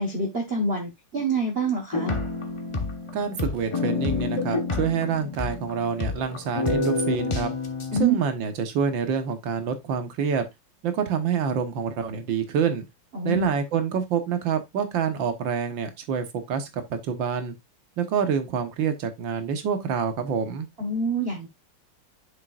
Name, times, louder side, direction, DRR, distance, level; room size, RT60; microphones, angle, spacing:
voice 1, 0.0-2.2 7.9-8.2 13.1-13.5 20.8-21.5, right 3 dB, 35° right, 1.2 m, -26 dB
sound 1, 1.9-8.0, left 3 dB, 25° left, 0.7 m, -28 dB
voice 2, 3.1-7.5 8.0-10.5 10.8-12.8 13.2-17.5 18.0-20.7, right 7 dB, 65° right, 1.9 m, -27 dB
7.8 x 6.6 x 2.5 m
omnidirectional pair, 2.3 m